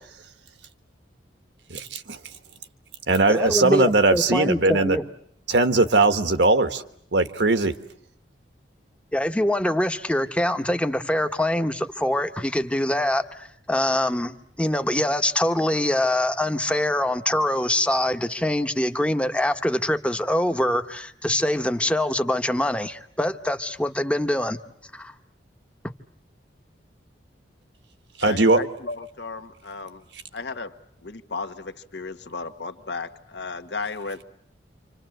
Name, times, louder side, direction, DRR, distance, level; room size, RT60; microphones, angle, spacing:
voice 1, 1.7-2.2 3.1-5.0 5.5-6.8 7.1-7.7 28.2-28.6, right 2 dB, 75° right, 10 dB, 1.4 m, -20 dB
voice 2, 3.3-5.0 9.1-24.6 24.9-25.1, left 1 dB, 5° left, 8 dB, 1.1 m, -24 dB
voice 3, 28.2-30.0 30.3-30.8 31.0-34.2, left 4 dB, 70° left, 8 dB, 1.5 m, -34 dB
28.5 x 26.0 x 7.9 m, 0.69 s
head